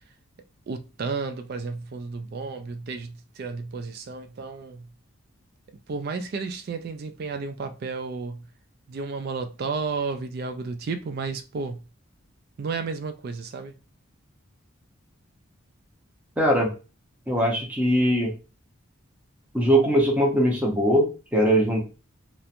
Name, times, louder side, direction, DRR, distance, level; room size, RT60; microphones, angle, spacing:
voice 1, 0.7-4.8 5.9-8.4 8.9-11.8 12.6-13.7, right 4 dB, 45° right, 0.3 m, -32 dB
voice 2, 16.4-16.7 17.3-18.3 19.5-21.8, equal, 5° right, 0.6 m, -21 dB
2.9 x 2.1 x 2.5 m
head